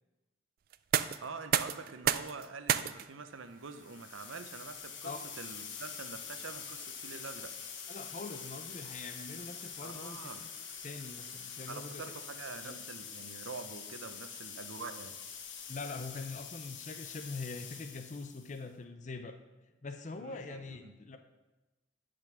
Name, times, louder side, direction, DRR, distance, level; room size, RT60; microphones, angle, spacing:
sound 1, 0.7-12.5, right 9 dB, 45° right, 0.3 m, -39 dB
voice 1, 1.2-7.5 9.8-10.5 11.7-15.1 20.2-20.9, right 4 dB, 85° right, 9 dB, 0.8 m, -46 dB
sound 2, 3.7-18.6, left 7 dB, 65° left, 1.2 m, -45 dB
voice 2, 7.9-10.5 10.8-12.0 12.6-12.8 15.7-19.4 19.8-21.2, left 3 dB, 35° left, 7 dB, 0.5 m, -43 dB
11.0 x 5.1 x 6.0 m, 1.1 s
head